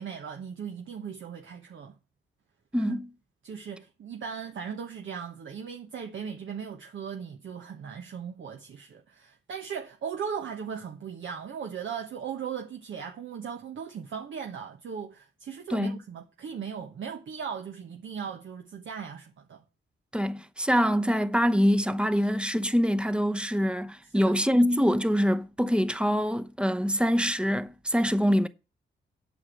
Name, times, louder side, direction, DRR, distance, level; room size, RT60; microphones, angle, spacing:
voice 1, 0.0-2.0 2.7-3.0 3.4-19.6 24.1-24.4, right 7 dB, 70° right, 1.2 m, -38 dB
voice 2, 2.7-3.1 15.7-16.0 20.1-28.5, equal, 5° right, 0.8 m, -25 dB
8.5 x 6.2 x 7.7 m
cardioid pair, 75°, 21 cm